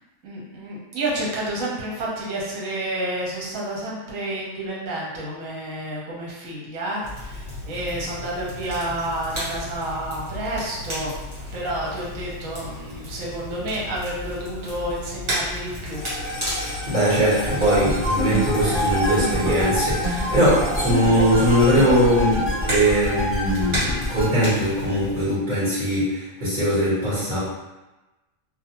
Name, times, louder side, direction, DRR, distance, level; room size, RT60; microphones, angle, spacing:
voice 1, 0.2-11.2 11.5-16.0, right 1 dB, 75° right, -5 dB, 1.2 m, -30 dB
Crackle, 7.0-25.2, left 1 dB, 60° right, 1.5 m, -34 dB
sound 1, 15.9-24.4, left 1 dB, 65° left, 0.8 m, -34 dB
voice 2, 16.6-27.4, equal, 35° right, -12 dB, 1.3 m, -21 dB
sound 2, 17.5-24.3, equal, 15° left, 0.6 m, -26 dB
2.6 x 2.2 x 2.8 m, 1.1 s
omnidirectional pair, 1.4 m